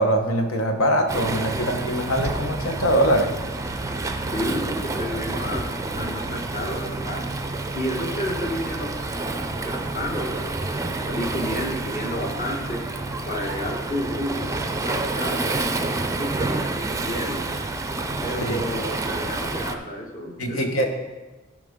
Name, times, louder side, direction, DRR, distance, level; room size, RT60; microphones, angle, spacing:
voice 1, 0.0-3.3 18.5-18.6 20.4-20.8, equal, 70° left, 3 dB, 1.3 m, -22 dB
Waves surf, 1.1-19.8, right 2 dB, 15° right, 0.5 m, -29 dB
voice 2, 4.3-7.4 7.7-8.9 9.6-10.6 11.1-12.8 13.2-14.5 14.8-15.7 16.2-17.4 18.2-20.9, equal, 40° left, -1 dB, 1.6 m, -31 dB
14.5 x 5.0 x 3.7 m, 1.2 s
head